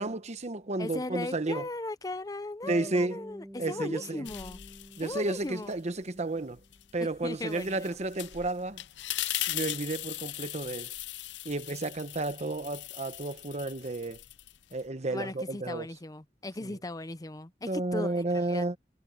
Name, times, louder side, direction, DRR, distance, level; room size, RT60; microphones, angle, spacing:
voice 1, 0.0-1.7 2.7-3.2 3.6-4.3 5.0-6.6 6.9-8.8 9.2-10.9 11.4-14.2 14.7-15.9 16.6-16.7 17.7-18.8, right 2 dB, 40° right, 1.0 m, -32 dB
voice 2, 0.8-4.6 5.0-5.8 7.0-7.9 15.1-18.7, left 2 dB, 20° left, 0.6 m, -38 dB
Bass guitar, 2.6-6.9, equal, 5° right, 1.4 m, -49 dB
sound 1, 4.2-5.8 6.2-14.9, left 15 dB, 85° left, 0.5 m, -39 dB
head